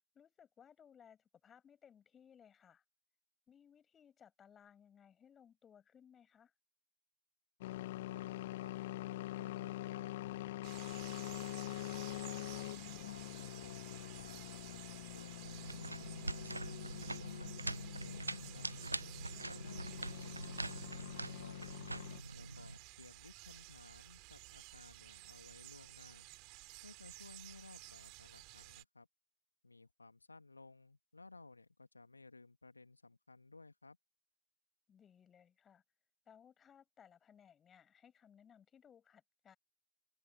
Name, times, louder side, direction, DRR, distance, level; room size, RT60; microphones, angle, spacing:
voice 1, 0.1-2.8 3.5-6.5 19.2-19.5 34.9-35.8 36.3-39.6, left 8 dB, 25° left, 7.4 m, -63 dB
sound 1, 7.6-22.2, left 16 dB, 55° left, 0.5 m, -45 dB
voice 2, 8.0-8.8 9.3-12.4 13.0-14.8 15.1-18.7 19.4-21.7 22.3-26.3 26.8-29.1 29.6-34.0, left 3 dB, 80° left, 2.2 m, -58 dB
sound 2, 10.6-28.8, right 28 dB, 45° right, 6.9 m, -54 dB
sound 3, 15.4-22.8, right 2 dB, 85° right, 0.4 m, -44 dB
open air
figure-of-eight pair, 90°, 0 cm